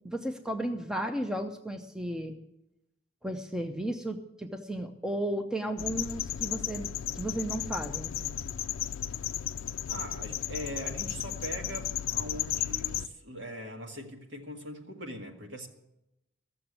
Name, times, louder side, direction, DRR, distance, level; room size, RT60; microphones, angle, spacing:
voice 1, 0.0-2.4 3.2-8.3, right 1 dB, 5° right, 0.6 m, -34 dB
sound 1, 5.8-13.1, left 11 dB, 80° left, 0.4 m, -34 dB
voice 2, 9.9-15.7, equal, 65° right, 1.8 m, -41 dB
14.5 x 6.9 x 8.1 m
head